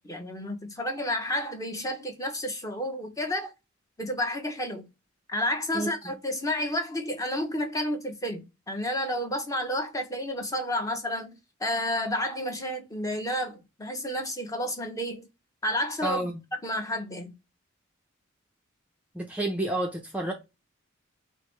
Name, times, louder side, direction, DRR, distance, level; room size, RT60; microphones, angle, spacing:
voice 1, 0.0-3.5 4.0-4.9 5.3-11.3 11.6-15.3 15.6-16.3 16.6-17.3, left 1 dB, 15° left, 0.7 m, -31 dB
voice 2, 16.0-16.4 19.1-20.3, right 2 dB, 5° right, 0.5 m, -29 dB
4.8 x 2.0 x 3.1 m
head